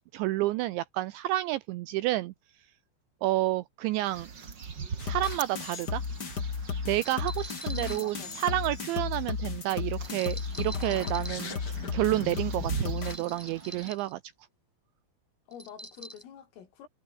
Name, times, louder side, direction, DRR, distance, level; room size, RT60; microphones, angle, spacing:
voice 1, 0.0-2.3 3.2-4.3 5.0-6.0 6.9-11.6 11.9-14.2, right 16 dB, 80° right, 2.8 m, -30 dB
sound 1, 3.9-13.9, right 6 dB, 45° right, 1.4 m, -42 dB
sound 2, 5.0-13.2, left 5 dB, 40° left, 1.4 m, -34 dB
sound 3, 5.1-5.4 6.9-8.8 10.0-11.6 12.9-14.1 15.5-16.2, right 1 dB, 5° right, 2.0 m, -45 dB
voice 2, 7.7-8.3 15.5-16.9, left 8 dB, 80° left, 6.3 m, -46 dB
omnidirectional pair, 5.9 m